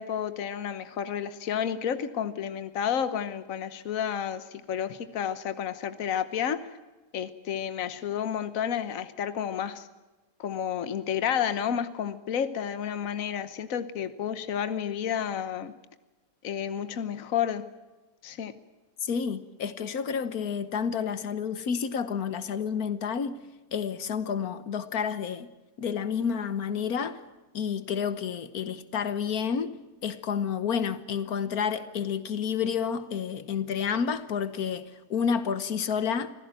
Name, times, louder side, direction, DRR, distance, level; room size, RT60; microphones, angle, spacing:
voice 1, 0.0-6.7 7.1-9.9 10.4-15.7 16.4-17.6 18.2-18.5, left 8 dB, 65° left, 1.4 m, -31 dB
voice 2, 19.0-23.4 23.7-25.5 25.8-27.2 27.5-29.8 30.0-36.3, left 7 dB, 85° left, 1.6 m, -30 dB
25.5 x 16.0 x 8.9 m
omnidirectional pair, 1.5 m